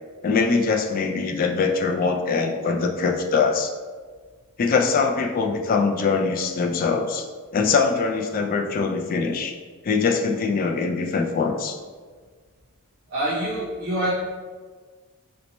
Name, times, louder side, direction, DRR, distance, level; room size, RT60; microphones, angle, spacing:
voice 1, 0.2-3.7 4.6-7.3 7.5-9.5 9.8-11.8, left 4 dB, 40° left, 3 dB, 0.3 m, -22 dB
voice 2, 13.1-14.1, right 1 dB, 45° right, -7 dB, 0.5 m, -25 dB
4.0 x 2.1 x 2.9 m, 1.5 s
head